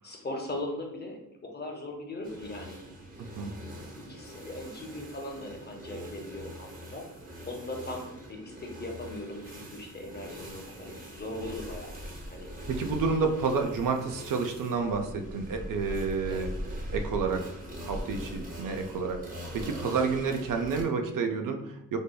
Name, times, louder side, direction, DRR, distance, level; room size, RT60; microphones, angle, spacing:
voice 1, 0.0-2.8 3.4-7.0 7.5-12.0 12.3-12.5 16.3-16.5 18.1-18.4, left 1 dB, 30° left, 1 dB, 0.6 m, -39 dB
sound 1, 2.2-20.8, equal, 25° right, 0.6 m, -42 dB
voice 2, 3.2-3.5 12.7-16.5 16.9-19.3 19.5-22.0, right 4 dB, 75° right, 5 dB, 0.5 m, -30 dB
5.0 x 2.2 x 2.2 m, 0.85 s
wide cardioid pair, 125°, 33 cm